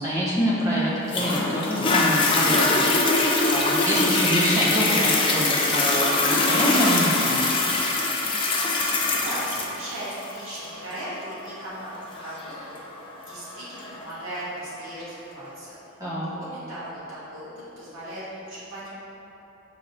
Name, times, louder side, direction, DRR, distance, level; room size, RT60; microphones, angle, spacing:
voice 1, 0.0-7.4 16.0-16.3, equal, 15° right, -8 dB, 0.8 m, -26 dB
Toilet flush, 1.1-14.1 14.7-14.8, left 2 dB, 25° left, 0.3 m, -23 dB
voice 2, 9.2-12.8 13.2-15.8 16.2-17.5 17.8-18.9, right 1 dB, 90° right, -11 dB, 1.3 m, -37 dB
5.2 x 3.3 x 2.6 m, 3.0 s
head